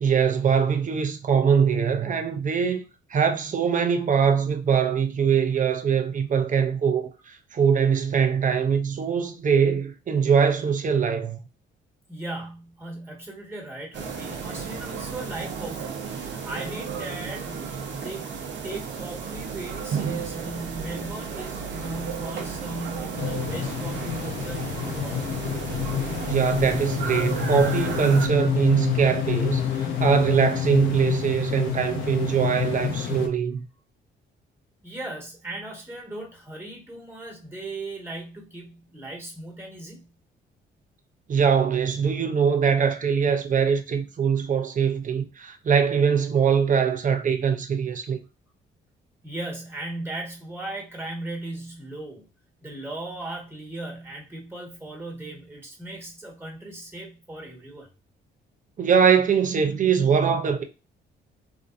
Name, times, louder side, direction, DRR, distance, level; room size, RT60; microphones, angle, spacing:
voice 1, 0.0-2.8 3.1-11.4 26.3-33.6 41.3-48.2 58.8-60.6, right 7 dB, 40° right, 0.6 m, -22 dB
voice 2, 12.1-18.3 18.6-25.2 34.8-40.1 49.2-52.3 52.6-57.9, right 2 dB, 10° right, 1.5 m, -37 dB
sound 1, 13.9-28.3, right 6 dB, 70° right, 0.8 m, -33 dB
sound 2, 23.1-33.3, left 9 dB, 80° left, 0.7 m, -28 dB
3.5 x 2.6 x 2.5 m
cardioid pair, 90°, 20 cm